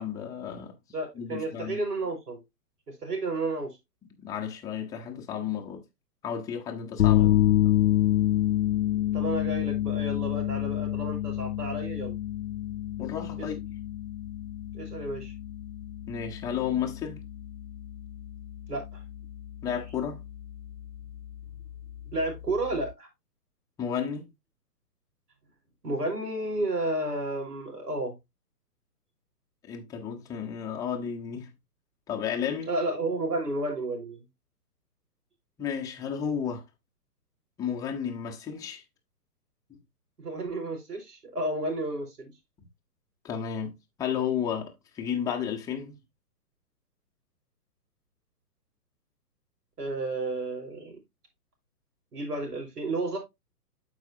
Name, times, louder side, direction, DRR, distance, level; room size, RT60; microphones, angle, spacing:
voice 1, 0.0-0.8 1.1-1.8 4.2-5.9 6.2-7.6 13.0-13.6 16.1-17.2 19.6-20.2 23.8-24.3 29.7-31.5 32.1-32.7 35.6-36.6 37.6-38.8 39.7-39.8 42.6-42.7 43.2-46.0, left 8 dB, 5° left, 0.7 m, -32 dB
voice 2, 0.9-2.4 2.9-3.8 7.2-7.3 9.1-12.2 13.4-13.5 14.7-15.3 18.7-19.0 22.1-23.1 25.8-28.2 32.7-34.3 40.2-42.3 49.8-51.0 52.1-53.2, right 2 dB, 70° right, 4.9 m, -32 dB
sound 1, 7.0-22.9, left 13 dB, 85° left, 0.7 m, -28 dB
12.0 x 4.8 x 2.6 m
hypercardioid pair, 130°, 48 cm